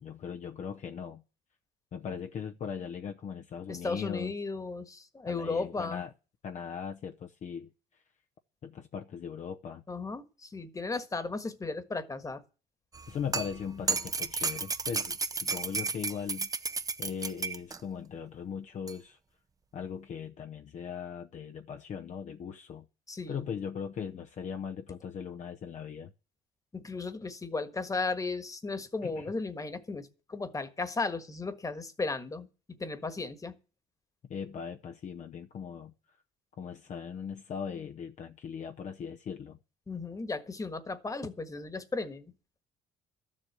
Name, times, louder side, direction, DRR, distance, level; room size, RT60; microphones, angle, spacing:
voice 1, 0.0-1.2 1.9-4.3 5.3-6.1 6.4-7.7 8.6-9.8 13.1-16.5 17.0-19.2 19.7-22.8 23.3-26.1 29.0-29.3 34.3-35.9 36.6-39.6, left 7 dB, 45° left, 0.8 m, -39 dB
voice 2, 3.7-6.0 9.9-12.4 23.1-23.5 26.7-33.6 39.9-42.3, left 3 dB, 20° left, 1.5 m, -35 dB
sound 1, 12.9-17.8 18.9-19.0, right 4 dB, 20° right, 0.7 m, -33 dB
13.0 x 7.5 x 8.1 m
cardioid pair, 110°, 17 cm